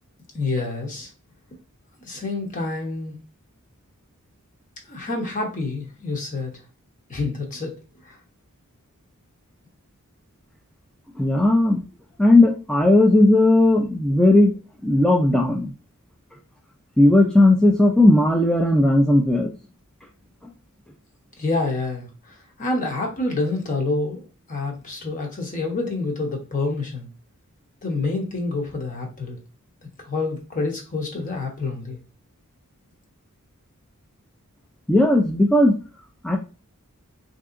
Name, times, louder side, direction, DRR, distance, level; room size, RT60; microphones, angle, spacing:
voice 1, 0.3-1.1 2.0-3.2 4.9-6.6 7.1-7.7 8.0-8.2 21.4-24.2 24.5-27.1 27.8-29.4 30.0-32.0, left 3 dB, 35° left, 1 dB, 0.9 m, -27 dB
voice 2, 11.2-11.8 12.2-14.5 14.8-15.7 17.0-19.5 34.9-35.7 36.2-36.4, left 1 dB, 5° left, 0 dB, 0.3 m, -16 dB
3.5 x 2.7 x 2.5 m, 0.33 s
head